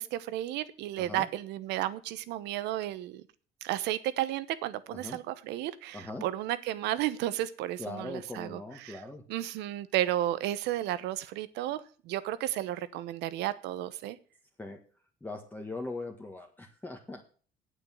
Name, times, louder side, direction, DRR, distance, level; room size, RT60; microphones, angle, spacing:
voice 1, 0.0-3.2 3.6-9.0 9.3-14.2, right 14 dB, 90° right, 15 dB, 1.0 m, -33 dB
voice 2, 5.9-6.3 7.8-9.2 14.6-14.8 15.2-17.2, left 2 dB, 10° left, 2 dB, 1.6 m, -40 dB
8.9 x 8.2 x 7.6 m, 0.41 s
cardioid pair, 110°, 17 cm